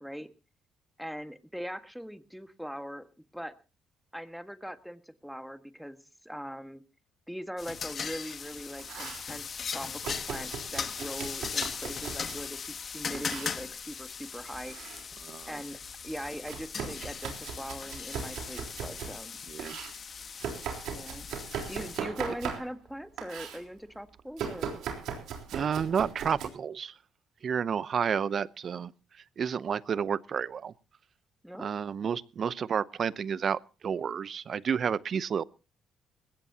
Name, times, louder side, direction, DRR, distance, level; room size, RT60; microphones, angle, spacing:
voice 1, 1.0-3.1 3.3-3.6 4.1-6.8 7.3-15.0 15.5-19.4 20.9-21.3 21.6-24.8 31.4-31.7, equal, ahead, 1.6 m, -41 dB
sound 1, 7.6-22.0, left 6 dB, 50° left, 1.3 m, -39 dB
Domestic sounds home sounds, 8.5-9.3 10.0-12.5 13.1-13.6 14.4-15.1 15.4-19.2 19.6-22.9 23.2-23.6 24.4-26.5, right 7 dB, 75° right, 3.7 m, -39 dB
voice 2, 25.5-26.9 27.4-28.9 29.4-30.7 31.6-35.4, right 7 dB, 50° right, 0.7 m, -30 dB
20.5 x 16.5 x 2.8 m
supercardioid pair, 75°, 0 cm